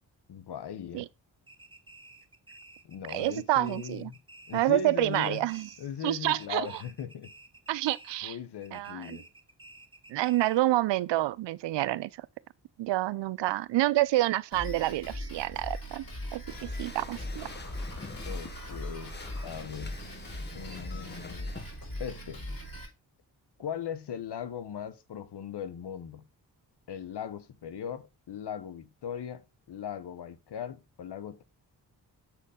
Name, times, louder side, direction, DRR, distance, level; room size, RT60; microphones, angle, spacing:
voice 1, 0.3-1.1 2.8-4.2 4.5-5.5 5.8-7.3 8.2-9.2 18.2-19.2 19.4-20.0 20.5-21.6 22.0-22.4 23.6-26.3 26.9-31.4, left 8 dB, 65° left, 1.0 m, -39 dB
sound 1, 1.5-4.8 5.1-6.0 6.3-8.3 8.6-10.7, right 2 dB, 10° right, 1.1 m, -53 dB
voice 2, 3.1-4.1 4.5-5.7 6.0-6.8 7.7-8.4 8.7-9.2 10.1-12.3 12.8-16.0 16.3-17.5, right 16 dB, 75° right, 0.5 m, -28 dB
Drum kit, 14.5-22.9, equal, 50° left, 5.4 m, -39 dB
sound 2, 16.5-21.8, left 4 dB, 25° left, 0.9 m, -46 dB
7.2 x 4.4 x 5.0 m
supercardioid pair, 45°, 44 cm